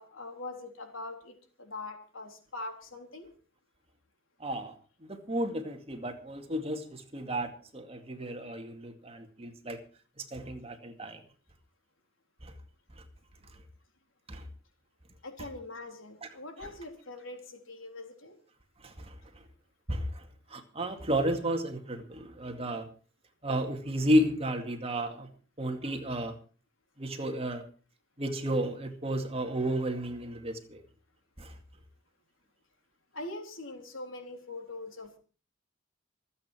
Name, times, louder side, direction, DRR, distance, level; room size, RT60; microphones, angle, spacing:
voice 1, 0.0-3.3 15.2-18.3 33.1-35.2, left 2 dB, 85° left, 3.8 m, -42 dB
voice 2, 4.4-4.7 5.0-9.8 10.2-11.2 12.4-12.5 14.3-14.5 15.4-15.5 16.2-16.3 16.6-16.7 18.8-19.1 19.9-20.2 20.5-22.9 23.4-25.3 25.6-26.3 27.0-27.6 28.2-30.8 31.4-31.5, right 1 dB, 30° right, 2.2 m, -32 dB
26.0 x 8.9 x 4.5 m
head